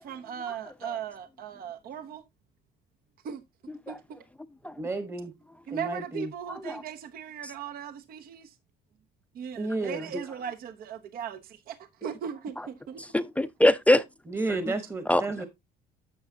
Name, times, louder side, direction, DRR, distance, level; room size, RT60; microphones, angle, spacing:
voice 1, 0.0-2.2 3.2-3.4 3.9-4.0 5.7-8.5 9.3-11.8 12.0-13.0, right 8 dB, 60° right, 0.9 m, -38 dB
voice 2, 4.8-5.3 5.7-6.3 9.6-10.1 14.3-15.5, right 2 dB, 15° right, 1.1 m, -32 dB
voice 3, 13.0-14.0 14.5-14.6 15.1-15.4, left 1 dB, 10° left, 0.5 m, -23 dB
10.5 x 6.9 x 2.7 m
cardioid pair, 110°, 17 cm